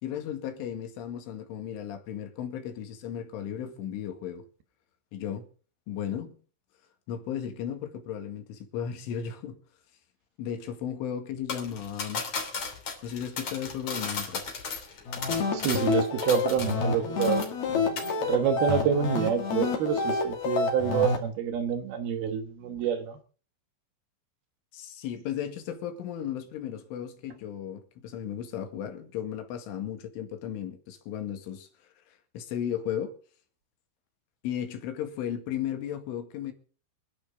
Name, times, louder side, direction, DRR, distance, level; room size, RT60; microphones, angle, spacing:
voice 1, 0.0-4.5 5.1-5.5 5.9-6.3 7.1-9.6 10.4-12.2 13.0-14.4 24.7-31.7 32.3-33.1 34.4-36.5, left 9 dB, 90° left, 4.5 m, -35 dB
sound 1, 11.5-16.9 17.2-17.7 18.0-18.1, left 5 dB, 40° left, 3.5 m, -35 dB
sound 2, 15.1-21.2, left 4 dB, 60° left, 4.1 m, -28 dB
voice 2, 15.5-17.4 17.7-23.2, right 8 dB, 65° right, 2.7 m, -28 dB
26.0 x 10.5 x 3.8 m
omnidirectional pair, 5.5 m